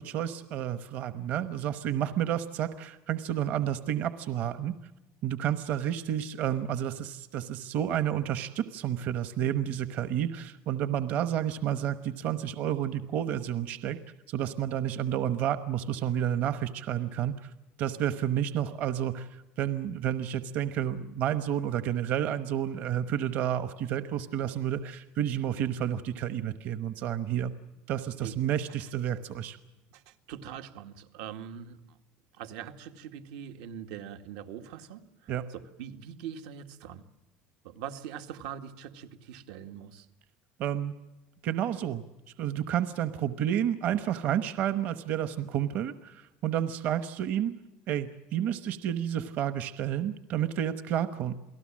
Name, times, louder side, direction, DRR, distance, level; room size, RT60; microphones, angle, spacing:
voice 1, 0.0-4.7 5.2-14.0 14.3-17.5 17.8-27.5 27.9-29.6 35.3-35.5 40.6-40.9 41.4-42.0 42.4-47.5 47.9-51.3, right 10 dB, 45° right, 11 dB, 1.0 m, -30 dB
voice 2, 29.9-32.0 32.4-37.0 37.6-40.1, right 9 dB, 85° right, 7 dB, 2.0 m, -42 dB
28.5 x 18.5 x 7.4 m, 1.0 s
cardioid pair, 180°, 4 cm